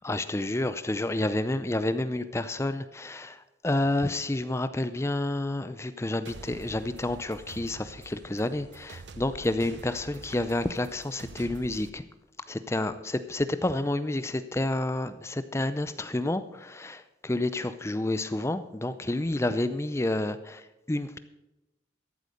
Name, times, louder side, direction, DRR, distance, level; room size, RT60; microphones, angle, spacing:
voice 1, 0.0-3.4 3.6-12.0 12.5-20.6 20.9-21.2, left 1 dB, 15° left, 12 dB, 0.5 m, -29 dB
sound 1, 6.3-11.9, right 3 dB, 90° right, 0.9 m, -46 dB
13.5 x 8.2 x 6.4 m, 0.99 s
head